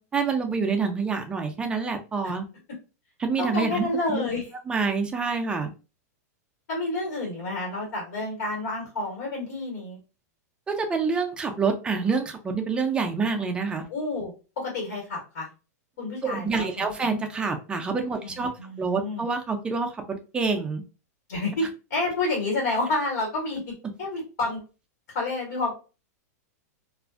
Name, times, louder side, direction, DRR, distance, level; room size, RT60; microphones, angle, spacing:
voice 1, 0.0-2.5 3.2-3.8 4.1-4.3 4.7-5.7 10.7-13.8 16.2-18.5 18.8-20.8, right 4 dB, 10° right, 4 dB, 0.3 m, -27 dB
voice 2, 3.4-4.5 6.7-10.0 13.9-15.5 16.0-17.0 18.2-19.2 21.3-23.6 24.0-24.6 25.1-25.8, left 2 dB, 75° left, -2 dB, 1.3 m, -29 dB
2.4 x 2.3 x 2.4 m, 0.33 s
supercardioid pair, 145°, 9 cm